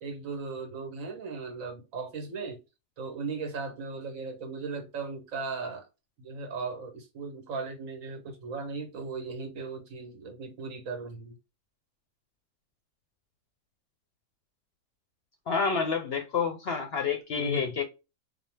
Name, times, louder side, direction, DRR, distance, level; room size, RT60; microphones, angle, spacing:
voice 1, 0.0-2.6 3.0-5.9 6.2-11.4 17.4-17.8, right 4 dB, 70° right, 1.3 m, -37 dB
voice 2, 15.5-17.8, left 5 dB, 60° left, 0.7 m, -29 dB
4.1 x 2.2 x 3.2 m
omnidirectional pair, 1.5 m